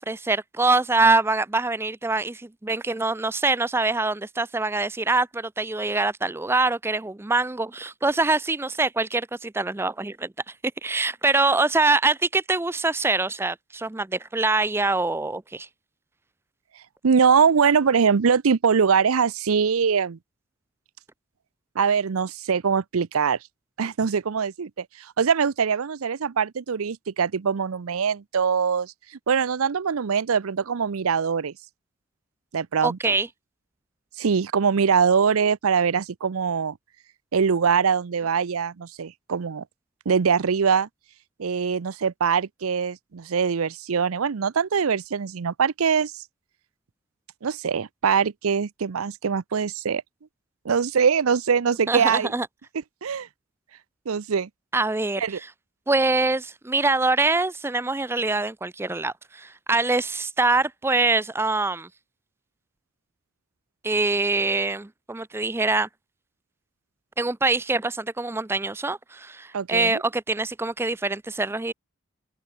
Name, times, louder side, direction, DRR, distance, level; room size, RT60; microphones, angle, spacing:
voice 1, 0.0-10.3 10.8-15.7 32.8-33.3 51.9-52.5 54.7-55.5 55.9-61.9 63.8-65.9 67.2-71.7, right 3 dB, 10° right, 0.4 m, -24 dB
voice 2, 17.0-20.2 21.8-23.4 23.8-28.9 29.3-31.5 32.5-33.1 34.2-36.8 37.3-39.6 40.1-40.9 41.4-46.2 47.4-50.0 50.6-52.3 53.0-53.3 54.1-54.5 55.2-55.4 69.5-70.0, right 6 dB, 85° right, 0.6 m, -23 dB
head